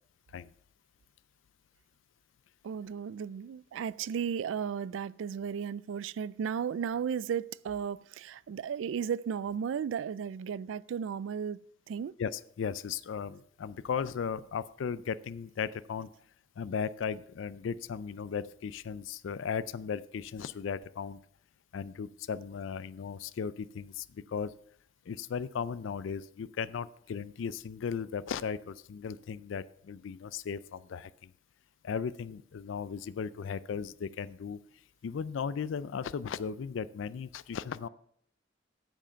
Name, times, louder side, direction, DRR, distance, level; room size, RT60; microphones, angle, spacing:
voice 1, 2.6-11.6 11.9-12.1, right 7 dB, 80° right, 0.3 m, -34 dB
voice 2, 12.2-16.1 16.6-21.2 21.7-24.5 25.1-31.3 31.8-34.6 35.0-37.9, left 6 dB, 85° left, 0.4 m, -36 dB
9.0 x 7.5 x 5.6 m
head